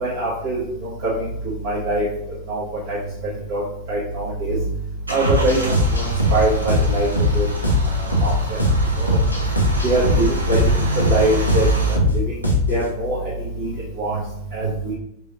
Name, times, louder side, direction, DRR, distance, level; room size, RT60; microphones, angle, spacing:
voice 1, 0.0-0.6 1.6-2.0 2.5-3.0 3.5-3.6 3.9-4.6 5.1-5.6 6.0-6.1 6.3-7.1 7.3-7.4 8.2-8.3 9.0-9.2 9.8-10.7 11.1-11.7 12.7-13.2 14.0-14.2 14.5-14.9, right 2 dB, 55° right, -10 dB, 1.4 m, -22 dB
Car / Engine starting / Idling, 4.1-11.9, right 1 dB, 80° right, 0.7 m, -25 dB
sound 1, 5.2-12.8, left 1 dB, 85° left, 0.7 m, -20 dB
4.8 x 2.9 x 2.6 m, 0.76 s
figure-of-eight pair, 90°, 0 cm